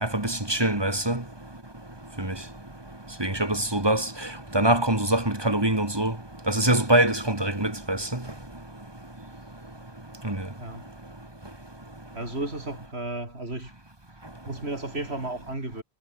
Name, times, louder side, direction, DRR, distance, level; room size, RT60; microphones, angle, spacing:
voice 1, 0.0-1.2 2.2-2.3 3.2-4.1 4.5-6.1 6.5-8.1 10.2-10.4, right 1 dB, 25° right, 2.3 m, -24 dB
voice 2, 10.6-10.9 12.1-13.7 14.5-15.8, right 2 dB, 80° right, 4.8 m, -33 dB
omnidirectional pair, 1.1 m